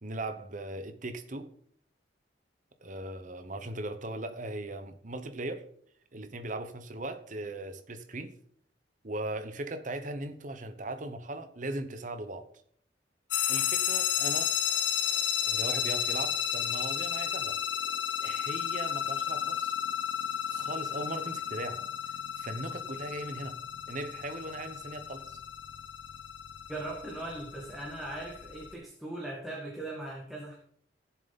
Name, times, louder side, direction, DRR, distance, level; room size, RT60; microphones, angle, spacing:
voice 1, 0.0-1.5 2.8-5.7 6.1-8.3 9.0-12.5 13.5-14.5 15.5-17.6 18.2-19.8 20.5-21.9 22.4-23.6 23.9-25.4, right 2 dB, 45° right, 1.0 m, -38 dB
sound 1, 13.3-28.7, left 9 dB, 85° left, 1.1 m, -33 dB
voice 2, 26.7-30.6, right 2 dB, ahead, 1.9 m, -39 dB
16.0 x 7.2 x 4.2 m
head